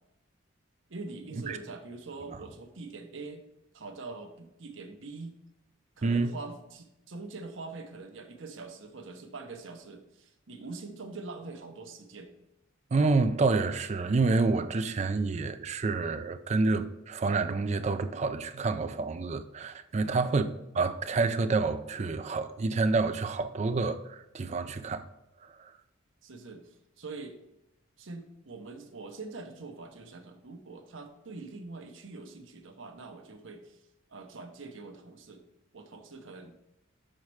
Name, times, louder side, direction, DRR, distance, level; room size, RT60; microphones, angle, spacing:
voice 1, 0.9-3.4 3.7-5.4 6.0-12.3 19.9-20.3 26.2-27.4 28.0-33.8 34.1-35.4 35.7-36.5, right 3 dB, 70° right, 0.9 m, -44 dB
voice 2, 6.0-6.3 12.9-20.5 20.7-25.1 25.4-25.7, right 3 dB, 35° right, 0.4 m, -28 dB
6.5 x 4.2 x 4.7 m
head